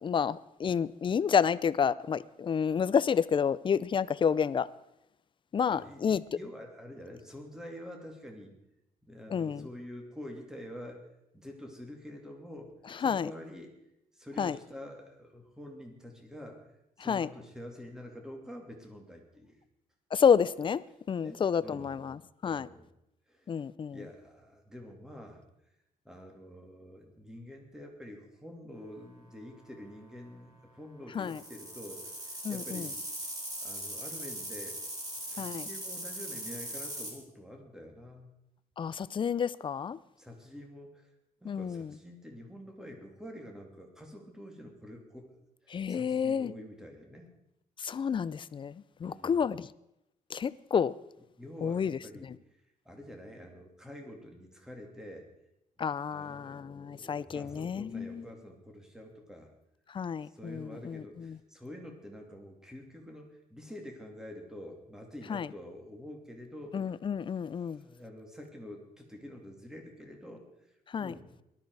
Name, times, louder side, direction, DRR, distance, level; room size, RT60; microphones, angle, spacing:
voice 1, 0.0-4.7 5.5-6.2 9.3-9.7 13.0-13.3 14.4-14.6 17.1-17.3 20.1-20.8 21.1-22.7 23.5-24.0 31.1-31.4 32.4-32.9 35.4-35.7 38.8-40.0 41.5-41.9 45.7-46.5 47.8-49.7 50.3-51.0 51.6-52.0 55.8-58.2 59.9-61.4 65.3-65.5 66.7-67.8 70.9-71.1, left 7 dB, 35° left, 0.5 m, -30 dB
voice 2, 5.7-8.5 9.0-11.1 11.3-12.7 13.0-13.7 14.1-16.6 17.0-19.6 21.2-22.1 22.4-22.9 23.3-23.5 23.9-25.4 26.0-33.0 33.5-34.8 35.2-38.3 40.2-41.1 41.4-45.3 45.6-47.3 49.0-49.5 51.4-52.3 52.8-55.3 56.0-59.5 60.2-66.8 67.8-71.3, equal, 5° right, 2.7 m, -47 dB
sound 1, 31.1-37.1, right 1 dB, 25° right, 4.1 m, -40 dB
18.5 x 13.0 x 4.8 m
cardioid pair, 150°, 15 cm